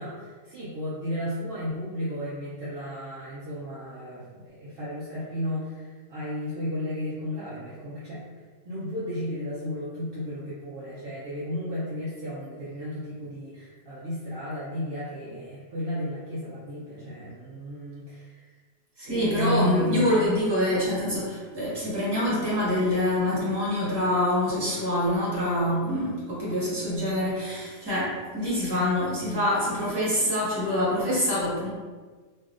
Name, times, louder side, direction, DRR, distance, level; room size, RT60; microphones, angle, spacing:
voice 1, 0.0-8.2 8.6-18.5 19.0-20.1 25.7-26.0, equal, 60° right, -9 dB, 0.5 m, -33 dB
voice 2, 19.0-31.7, left 1 dB, 15° right, -8 dB, 1.0 m, -25 dB
3.3 x 2.7 x 2.4 m, 1.4 s
omnidirectional pair, 1.8 m